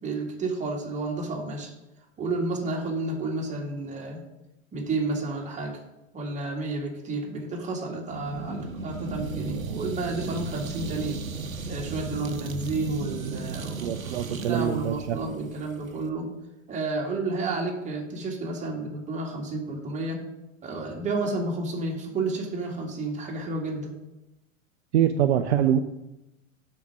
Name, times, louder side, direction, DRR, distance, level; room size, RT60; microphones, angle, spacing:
voice 1, 0.0-1.7 2.2-4.2 4.7-5.8 6.1-11.2 11.7-13.7 14.0-16.3 16.7-20.2 20.6-23.9, right 2 dB, 20° right, -1 dB, 1.9 m, -31 dB
sound 1, 8.1-16.1, right 4 dB, 80° right, 0.9 m, -35 dB
voice 2, 13.8-15.2 24.9-25.8, right 10 dB, 55° right, 7 dB, 0.6 m, -24 dB
7.2 x 5.8 x 5.9 m, 0.95 s
figure-of-eight pair, 95°, 40 cm